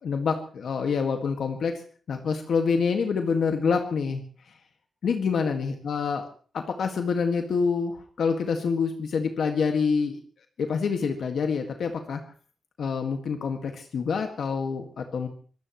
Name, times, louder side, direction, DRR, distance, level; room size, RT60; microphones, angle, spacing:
voice 1, 0.0-1.7 2.1-4.2 5.0-6.2 6.5-10.2 10.6-12.2 12.8-15.3, left 5 dB, 70° left, 4 dB, 1.8 m, -26 dB
24.5 x 19.0 x 3.1 m, 0.43 s
wide cardioid pair, 140°, 0 cm